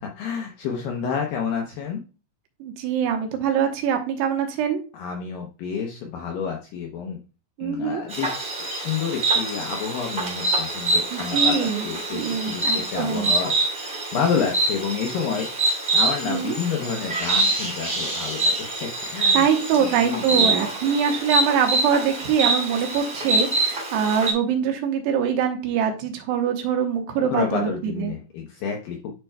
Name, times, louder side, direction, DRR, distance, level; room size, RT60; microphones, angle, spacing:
voice 1, 0.2-2.0 4.9-7.2 7.6-15.5 15.9-19.5 19.9-20.5 27.2-29.2, left 6 dB, 75° left, 1 dB, 2.1 m, -29 dB
voice 2, 2.6-4.8 7.6-8.0 11.1-11.9 12.1-13.3 16.3-16.6 19.3-28.1, right 7 dB, 75° right, 4 dB, 3.1 m, -24 dB
Insect, 8.1-24.3, right 2 dB, 20° right, 1.4 m, -25 dB
11.0 x 4.4 x 2.2 m, 0.34 s
omnidirectional pair, 4.9 m